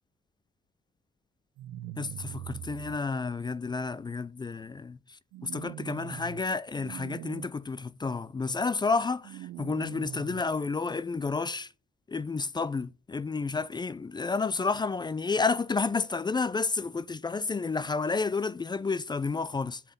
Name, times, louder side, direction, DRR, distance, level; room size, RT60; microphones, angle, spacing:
sound 1, 1.6-3.0 5.3-6.4 6.8-7.5 9.2-10.4, right 14 dB, 85° right, 0.4 m, -42 dB
voice 1, 2.0-5.0 5.4-11.7 12.1-19.8, left 4 dB, 20° left, 0.5 m, -30 dB
8.1 x 5.8 x 8.0 m
cardioid pair, 90°, 20 cm